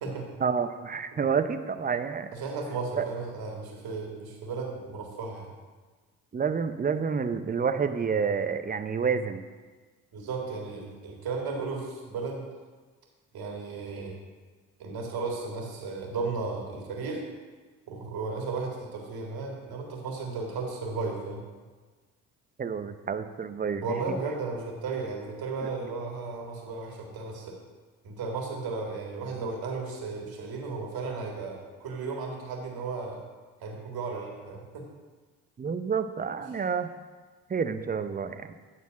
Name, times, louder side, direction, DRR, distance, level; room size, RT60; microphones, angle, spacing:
voice 1, 0.4-2.3 3.0-3.1 6.3-9.4 22.6-23.8 35.6-36.9 37.5-38.5, right 6 dB, 20° right, 10 dB, 0.6 m, -29 dB
voice 2, 2.3-5.5 10.1-12.4 13.3-14.2 14.8-17.2 17.9-21.4 23.8-27.6 28.0-33.2 33.6-34.9, right 4 dB, 65° right, 0 dB, 2.0 m, -34 dB
9.1 x 4.1 x 6.3 m, 1.4 s
hypercardioid pair, 50°, 40 cm